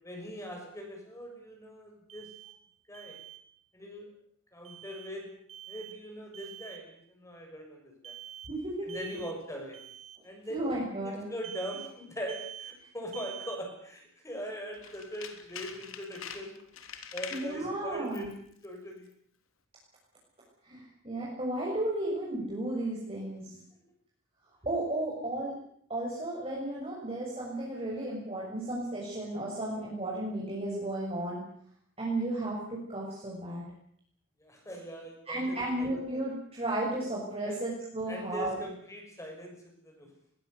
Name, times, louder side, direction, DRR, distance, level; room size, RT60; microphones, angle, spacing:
voice 1, 0.0-2.3 2.9-3.2 3.7-4.1 4.5-5.3 5.7-8.1 8.9-9.8 10.2-10.8 11.3-16.6 17.1-18.3 18.6-19.1 34.4-35.9 37.4-37.6 38.1-39.6 39.8-40.1, equal, 15° left, 2 dB, 6.5 m, -41 dB
Alarm, 2.1-2.6 2.9-3.4 4.7-5.1 5.5-6.0 6.3-6.8 8.0-8.5 8.9-9.4 9.7-10.2 11.4-11.9 12.3-12.8 13.1-13.6, right 10 dB, 90° right, 2.8 m, -46 dB
voice 2, 8.5-9.2 10.5-11.3 17.3-18.3 20.6-23.6 24.6-25.5 25.9-31.4 32.0-33.6 35.3-38.6, right 1 dB, 30° right, -4 dB, 6.6 m, -34 dB
Tools, 14.7-17.6 18.1-18.4 18.6-18.7, left 7 dB, 80° left, 3.3 m, -44 dB
21.5 x 21.5 x 8.3 m, 0.65 s
head